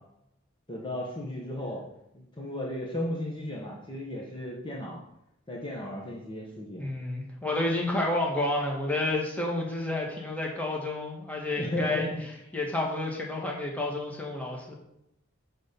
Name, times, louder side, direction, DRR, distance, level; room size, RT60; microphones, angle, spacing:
voice 1, 0.7-1.8 2.1-5.0 5.5-6.8 11.6-12.2, left 1 dB, 25° left, -3 dB, 1.6 m, -35 dB
voice 2, 6.8-12.1 12.5-14.7, left 2 dB, 5° left, -2 dB, 1.9 m, -30 dB
10.5 x 4.2 x 7.1 m, 0.82 s
head